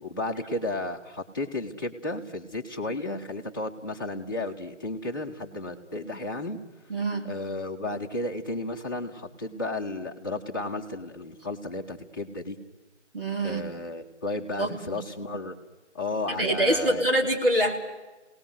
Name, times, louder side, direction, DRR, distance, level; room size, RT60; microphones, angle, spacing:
voice 1, 0.0-6.6 7.2-12.6 13.4-15.5 15.9-17.0, left 2 dB, 15° left, -3 dB, 1.3 m, -33 dB
voice 2, 6.9-7.3 13.1-13.6 14.6-15.0 16.3-17.8, right 1 dB, 50° right, 2 dB, 3.7 m, -25 dB
27.5 x 19.0 x 8.0 m, 1.2 s
figure-of-eight pair, 170°, 36 cm